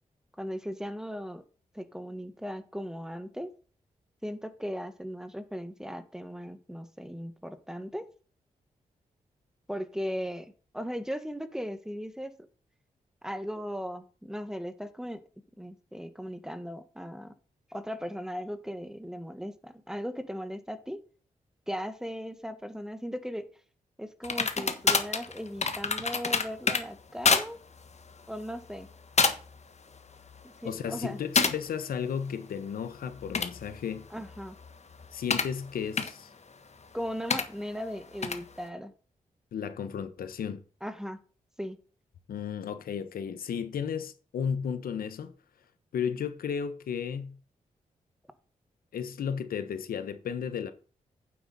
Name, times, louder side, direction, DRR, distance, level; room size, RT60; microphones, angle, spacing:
voice 1, 0.4-1.4 1.7-3.5 4.2-8.1 9.7-12.3 13.2-15.2 15.6-17.3 17.7-21.0 21.7-23.5 24.0-27.6 28.3-28.9 30.4-31.2 34.1-34.6 36.9-38.9 40.8-41.2 41.6-41.8, equal, 5° right, 1.6 m, -37 dB
sound 1, 24.2-26.8 27.2-27.5 27.8-28.1 28.7-28.9 29.2-29.6 30.0-30.4 31.4-31.6 33.1-35.5 36.0-36.1 37.3-37.4 38.2-38.4, left 4 dB, 50° left, 1.5 m, -27 dB
voice 2, 30.6-34.1 35.1-36.3 39.5-40.6 42.3-45.3 45.9-47.4 48.9-50.7, left 7 dB, 85° left, 1.1 m, -34 dB
9.3 x 7.8 x 4.1 m
cardioid pair, 55°, 15 cm